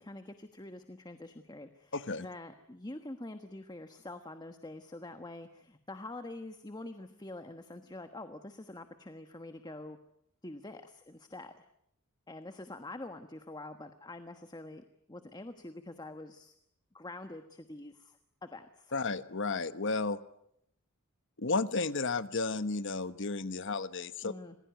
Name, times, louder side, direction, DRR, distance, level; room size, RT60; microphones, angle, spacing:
voice 1, 0.0-10.0 10.4-11.6 12.3-16.5 16.9-18.9 24.2-24.6, left 2 dB, 20° left, 8 dB, 1.3 m, -46 dB
voice 2, 1.9-2.3 18.9-20.2 21.4-24.3, left 3 dB, 55° left, 12 dB, 1.2 m, -33 dB
27.0 x 20.5 x 9.3 m, 0.76 s
head